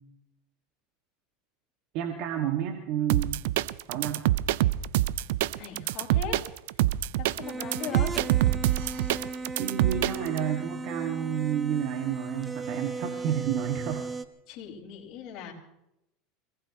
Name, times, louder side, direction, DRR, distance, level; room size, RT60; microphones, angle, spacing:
voice 1, 1.9-3.4 3.9-4.2 9.6-14.1, right 9 dB, 60° right, 3 dB, 1.7 m, -30 dB
sound 1, 3.1-10.4, right 15 dB, 75° right, 0.5 m, -25 dB
voice 2, 5.6-6.4 7.2-8.1 14.5-15.5, left 9 dB, 55° left, -3 dB, 5.2 m, -39 dB
sound 2, 7.4-14.2, right 3 dB, 15° right, 1.2 m, -36 dB
26.5 x 18.5 x 3.0 m, 0.85 s
supercardioid pair, 110°, 0 cm